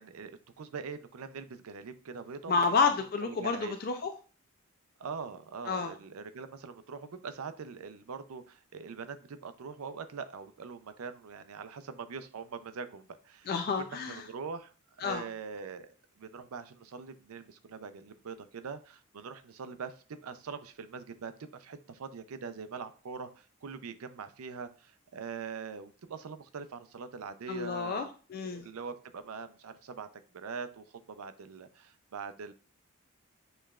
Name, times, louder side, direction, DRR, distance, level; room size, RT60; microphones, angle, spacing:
voice 1, 0.0-2.6 3.4-3.7 5.0-13.5 13.8-28.1 28.5-30.1 30.3-32.5, right 5 dB, 80° right, 11 dB, 0.5 m, -43 dB
voice 2, 2.5-4.1 5.7-5.9 13.5-14.3 15.0-15.3 27.5-28.7, left 5 dB, 40° left, 6 dB, 0.3 m, -30 dB
6.6 x 3.1 x 2.3 m, 0.38 s
head